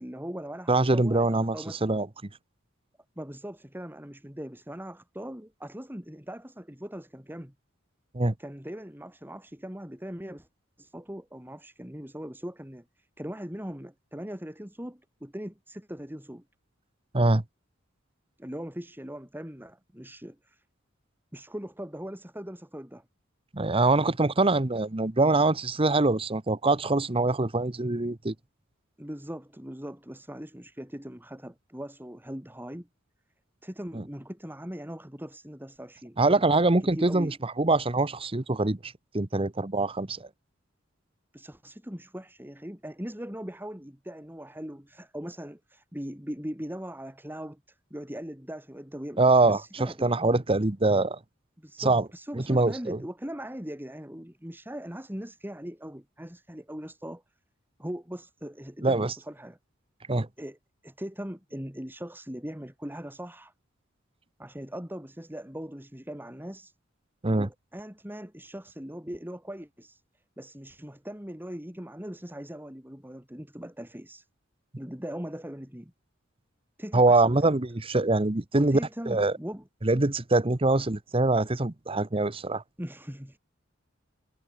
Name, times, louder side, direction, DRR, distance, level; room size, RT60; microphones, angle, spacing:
voice 1, 0.0-1.9 3.2-7.5 8.4-10.5 10.8-16.4 18.4-20.6 21.3-23.0 29.0-32.9 33.6-36.4 36.9-37.4 41.3-50.2 51.6-57.2 57.8-59.6 60.4-60.6 60.8-63.5 64.4-66.7 67.4-70.0 70.4-74.3 74.8-75.9 76.8-77.5 78.5-79.6 82.8-83.4, equal, 10° right, 3.2 m, -40 dB
voice 2, 0.7-1.6 1.8-2.1 8.1-8.3 17.1-17.4 23.5-28.3 33.9-34.0 36.2-40.3 49.2-51.2 51.8-52.1 52.3-53.0 58.8-59.1 60.1-60.3 67.2-67.5 76.9-78.8 79.1-79.3 79.8-82.6, right 2 dB, 30° right, 1.1 m, -24 dB
head